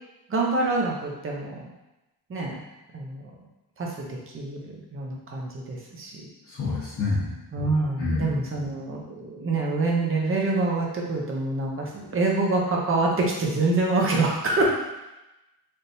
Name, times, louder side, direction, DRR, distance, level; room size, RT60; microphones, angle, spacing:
voice 1, 0.3-1.7 2.3-2.6 2.9-3.2 3.8-6.2 7.5-14.6, right 3 dB, 30° right, -1 dB, 0.7 m, -26 dB
voice 2, 6.5-7.3 8.0-8.4, left 3 dB, 35° left, -10 dB, 1.0 m, -27 dB
4.1 x 3.6 x 2.6 m, 0.97 s
wide cardioid pair, 160°, 44 cm